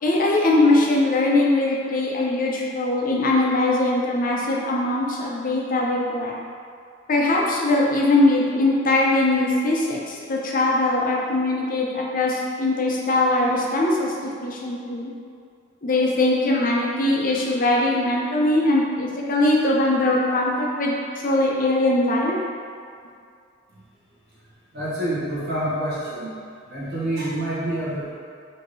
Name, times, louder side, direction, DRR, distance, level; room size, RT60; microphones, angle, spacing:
voice 1, 0.0-6.3 7.1-15.1 15.8-21.0 21.2-22.4, left 2 dB, 45° left, -3 dB, 0.6 m, -21 dB
voice 2, 24.7-26.3 26.7-28.1, right 1 dB, 55° right, -8 dB, 1.2 m, -27 dB
4.5 x 2.9 x 3.2 m, 2.3 s
head